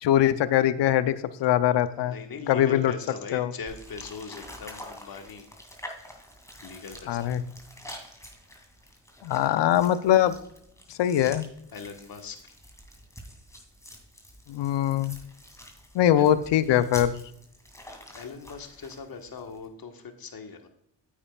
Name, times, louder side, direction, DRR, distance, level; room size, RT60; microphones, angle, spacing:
voice 1, 0.0-2.1 2.5-2.9 3.3-3.5 7.1-7.4 9.2-10.3 10.9-11.4 14.5-15.2 15.9-17.1, left 11 dB, 65° left, 14 dB, 0.7 m, -22 dB
voice 2, 2.0-5.5 6.6-7.3 11.7-12.5 16.1-16.2 18.1-20.7, left 5 dB, 50° left, 5 dB, 1.5 m, -40 dB
sound 1, 3.7-19.7, equal, 5° left, 2.4 m, -47 dB
9.9 x 8.6 x 2.4 m, 0.72 s
supercardioid pair, 65°, 46 cm